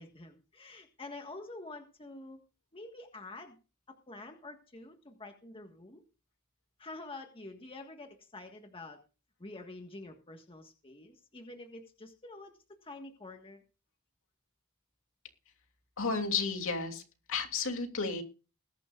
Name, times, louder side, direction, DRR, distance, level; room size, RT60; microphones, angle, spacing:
voice 1, 0.0-2.4 2.7-3.6 3.9-6.0 6.8-9.0 9.4-13.6, left 2 dB, 25° left, 4 dB, 1.6 m, -47 dB
voice 2, 16.0-17.0 17.3-18.2, left 4 dB, 65° left, 4 dB, 2.9 m, -32 dB
21.0 x 11.5 x 2.5 m, 0.33 s
head